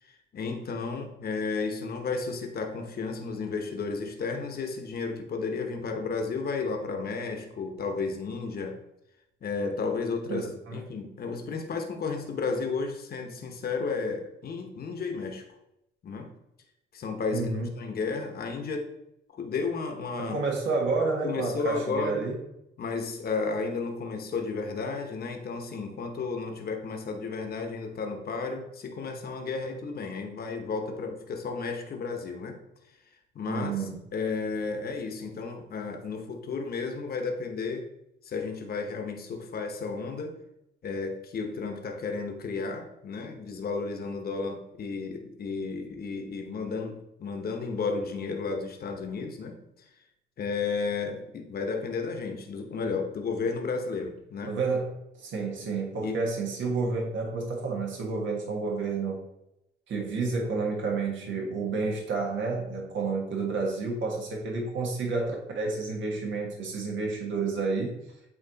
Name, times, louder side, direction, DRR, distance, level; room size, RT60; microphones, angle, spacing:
voice 1, 0.0-8.8 9.4-15.5 16.0-16.3 16.9-18.9 19.3-20.4 21.2-22.3 22.8-32.6 33.3-37.9 38.2-40.4 40.8-49.6 50.4-54.6 56.0-56.3, left 4 dB, 50° left, 4 dB, 1.0 m, -33 dB
voice 2, 10.3-10.8 17.3-17.7 20.2-22.4 33.5-34.0 54.5-54.9 55.2-59.2 59.9-67.9, right 4 dB, 70° right, -1 dB, 1.5 m, -30 dB
8.5 x 3.0 x 4.0 m, 0.85 s
cardioid pair, 90°, 20 cm